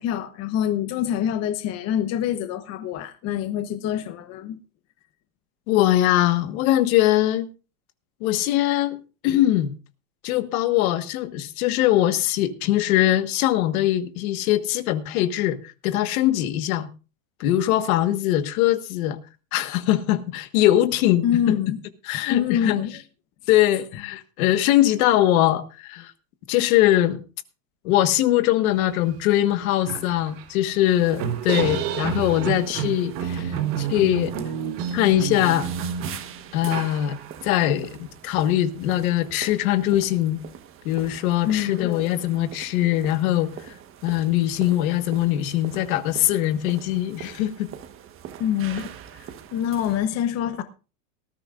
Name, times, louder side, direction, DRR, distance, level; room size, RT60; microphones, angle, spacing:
voice 1, 0.0-4.6 21.2-21.8 22.3-23.0 41.4-41.9 48.4-48.9 49.2-50.6, left 10 dB, 35° left, 1.0 m, -25 dB
voice 2, 5.7-7.5 8.2-9.7 10.2-16.9 17.4-19.2 19.5-21.6 22.0-22.8 23.5-26.1 26.5-27.2 27.8-34.3 34.9-35.7 36.5-37.2 37.4-40.4 40.8-43.5 44.0-47.7, left 13 dB, 65° left, 1.5 m, -22 dB
sound 1, 29.1-29.2 29.5-37.6, right 8 dB, 65° right, 3.7 m, -30 dB
sound 2, 30.8-50.1, right 9 dB, 30° right, 1.3 m, -43 dB
19.0 x 14.0 x 2.5 m
supercardioid pair, 155°, 46 cm